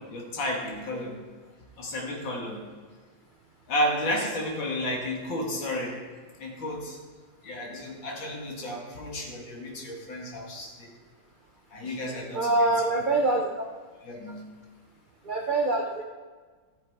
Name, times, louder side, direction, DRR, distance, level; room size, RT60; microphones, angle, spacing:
voice 1, 0.1-1.2 1.8-2.6 3.7-6.0 6.4-7.0 7.4-10.9 11.7-12.7 14.0-14.4, left 1 dB, 90° left, -1 dB, 2.6 m, -32 dB
voice 2, 12.3-13.7 15.2-16.0, right 2 dB, 70° right, 2 dB, 0.4 m, -25 dB
14.5 x 6.3 x 4.7 m, 1.5 s
omnidirectional pair, 2.0 m